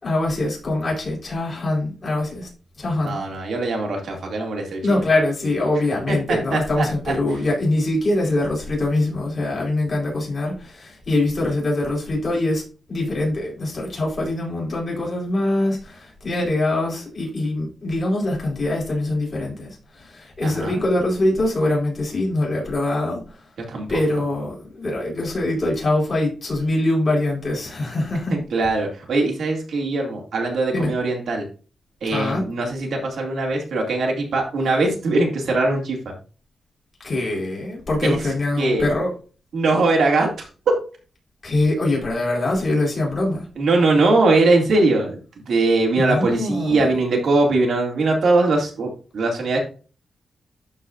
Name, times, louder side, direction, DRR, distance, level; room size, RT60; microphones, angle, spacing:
voice 1, 0.0-2.5 2.8-3.2 4.8-12.6 12.9-23.4 23.9-28.4 30.7-30.9 32.1-32.4 37.0-39.1 41.4-43.5 45.9-46.9, left 2 dB, 35° left, -3 dB, 4.6 m, -23 dB
voice 2, 3.0-4.8 6.1-7.1 20.4-20.8 23.7-24.0 28.3-31.5 32.0-36.1 38.0-38.2 38.6-38.9 39.5-40.3 43.6-45.2 45.5-49.6, right 2 dB, 75° right, 1 dB, 2.6 m, -21 dB
12.0 x 4.9 x 2.6 m, 0.36 s
wide cardioid pair, 130°, 0 cm